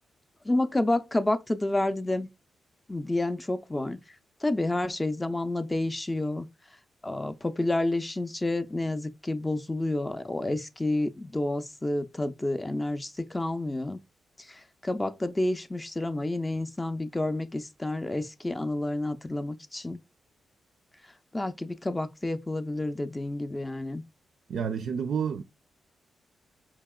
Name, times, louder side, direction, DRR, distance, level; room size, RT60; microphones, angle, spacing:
voice 1, 0.4-2.3 2.9-4.0 4.4-6.5 7.0-14.0 14.4-20.0 21.3-24.0, left 2 dB, 15° left, 0.4 m, -29 dB
voice 2, 24.5-25.4, right 7 dB, 75° right, 0.4 m, -29 dB
4.8 x 2.8 x 2.2 m
cardioid pair, 100°, 0 cm